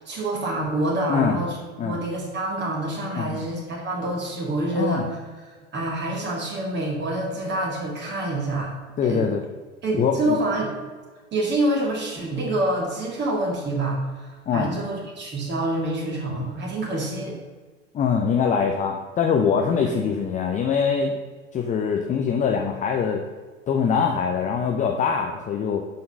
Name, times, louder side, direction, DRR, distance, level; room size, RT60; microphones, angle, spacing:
voice 1, 0.0-8.7 9.0-9.3 9.8-10.7 11.3-17.4 19.8-20.0, right 1 dB, 30° right, -2 dB, 2.3 m, -27 dB
voice 2, 4.7-5.0 9.0-9.4 10.0-10.4 14.5-14.7 17.9-21.2 21.5-23.2 23.7-25.8, left 6 dB, 20° left, 3 dB, 0.6 m, -23 dB
7.7 x 5.8 x 5.4 m, 1.4 s
figure-of-eight pair, 75°, 36 cm